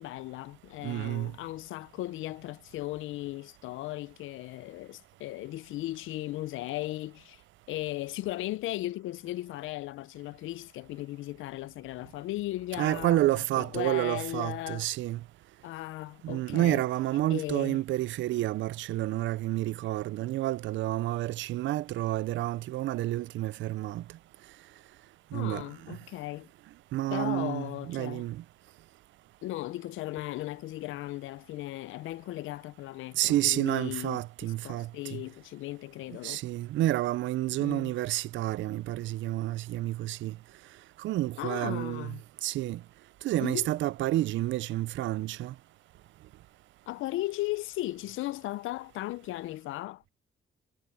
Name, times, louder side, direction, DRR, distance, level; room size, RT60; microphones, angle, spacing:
voice 1, 0.0-7.4 7.7-14.9 15.6-16.8 17.3-17.8 25.3-26.5 27.1-28.3 29.4-36.4 37.6-37.9 41.4-42.2 43.4-43.7 46.9-50.0, left 17 dB, 85° left, 0.5 m, -37 dB
voice 2, 0.8-1.3 12.8-15.2 16.2-24.0 25.3-25.6 26.9-28.4 33.2-35.2 36.2-40.3 41.0-42.1 42.4-42.8 43.2-45.5, right 15 dB, 70° right, 0.4 m, -29 dB
cardioid pair, 90°, 20 cm